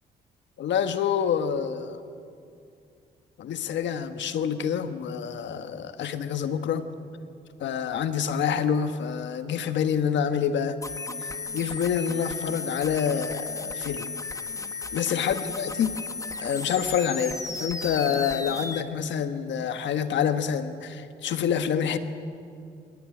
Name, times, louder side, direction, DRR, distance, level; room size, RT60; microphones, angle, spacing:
voice 1, 0.6-2.0 3.4-6.9 7.6-10.8 11.5-14.1 14.9-15.9 16.4-22.0, left 8 dB, 75° left, 9 dB, 1.4 m, -27 dB
sound 1, 10.8-18.8, left 3 dB, 15° left, 1.6 m, -35 dB
26.5 x 17.0 x 10.0 m, 2.5 s
cardioid pair, 75°, 19 cm